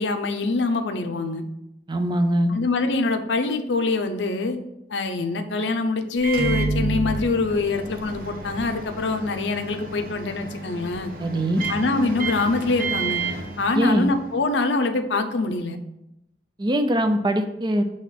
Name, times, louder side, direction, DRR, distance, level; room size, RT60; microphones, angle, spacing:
voice 1, 0.0-1.4 2.5-4.6 4.9-11.1 11.7-13.2 13.6-15.8, left 3 dB, 80° left, 6 dB, 0.6 m, -24 dB
voice 2, 1.9-2.5 11.2-11.6 13.7-14.1 16.6-17.8, right 1 dB, 25° right, 7 dB, 0.5 m, -22 dB
Microwave oven, 6.2-14.3, right 3 dB, 55° right, 0.9 m, -30 dB
6.4 x 3.0 x 5.8 m, 0.86 s
head